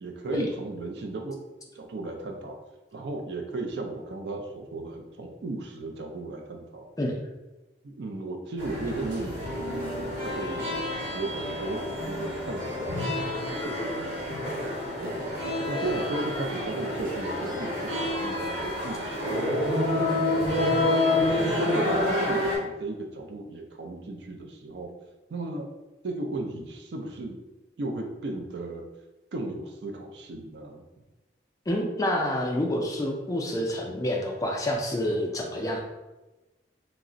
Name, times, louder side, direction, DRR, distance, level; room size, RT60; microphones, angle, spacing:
voice 1, 0.0-1.4 1.7-2.6 2.9-6.9 7.8-10.7 11.1-13.1 13.5-14.2 15.0-15.4 15.7-19.8 20.4-20.8 21.1-24.9 25.3-25.7 26.0-27.4 27.8-28.8 29.3-30.9, right 2 dB, 65° right, 3 dB, 0.4 m, -35 dB
sound 1, 8.6-22.6, left 1 dB, 45° right, 1.0 m, -28 dB
voice 2, 31.7-35.8, left 1 dB, 20° left, 1 dB, 0.3 m, -28 dB
2.4 x 2.0 x 3.7 m, 1.1 s
head